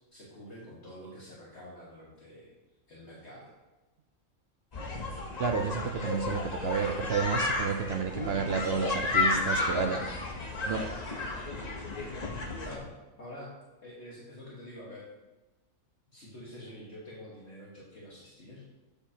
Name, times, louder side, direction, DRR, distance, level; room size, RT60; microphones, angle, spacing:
voice 1, 0.1-2.5 2.9-3.5 12.6-15.1 16.1-18.6, left 1 dB, 50° left, -6 dB, 1.7 m, -47 dB
sound 1, 4.7-12.8, left 3 dB, 35° left, 0.8 m, -32 dB
voice 2, 5.4-10.0 10.7-10.8, right 5 dB, 60° right, 4 dB, 0.7 m, -30 dB
7.7 x 6.9 x 2.8 m, 1.1 s
omnidirectional pair, 1.4 m